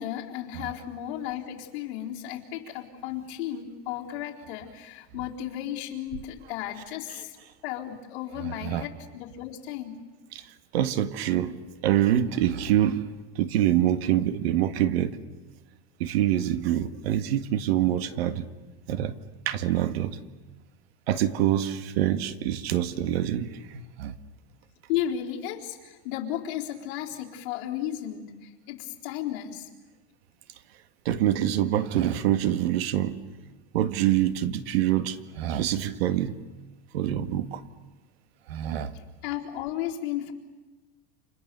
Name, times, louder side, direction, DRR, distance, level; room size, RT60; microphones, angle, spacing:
voice 1, 0.0-7.4 7.6-10.0 24.9-29.7 39.2-40.3, left 11 dB, 60° left, -1 dB, 4.0 m, -34 dB
voice 2, 8.4-8.8 10.3-10.5 10.7-11.6 11.8-13.0 13.4-15.2 16.0-18.5 18.9-19.1 19.5-20.2 21.1-24.2 31.1-33.2 33.7-36.3 36.9-37.6 38.5-38.9, right 11 dB, 75° right, 11 dB, 1.9 m, -25 dB
30.0 x 28.0 x 6.9 m, 1.2 s
supercardioid pair, 165°, 30 cm